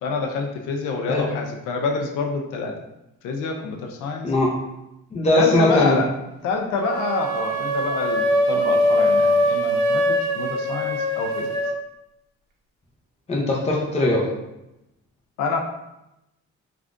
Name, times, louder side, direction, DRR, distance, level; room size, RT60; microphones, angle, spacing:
voice 1, 0.0-2.7 3.2-4.3 5.3-6.1 6.4-11.6 15.4-15.6, left 4 dB, 90° left, 3 dB, 0.5 m, -27 dB
voice 2, 4.2-4.5 5.1-6.0 13.3-14.3, left 1 dB, 20° left, -3 dB, 0.6 m, -20 dB
sound 1, 6.8-11.8, equal, 85° right, 0.6 m, -22 dB
3.5 x 2.4 x 2.4 m, 0.90 s
cardioid pair, 90°, 30 cm